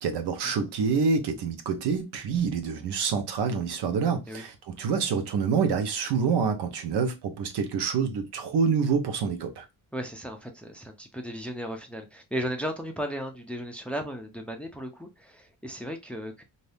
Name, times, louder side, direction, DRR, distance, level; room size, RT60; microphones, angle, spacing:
voice 1, 0.0-9.6, right 5 dB, 90° right, 0.9 m, -27 dB
voice 2, 9.9-16.4, equal, 5° left, 0.4 m, -35 dB
2.7 x 2.6 x 3.4 m
cardioid pair, 150°, 39 cm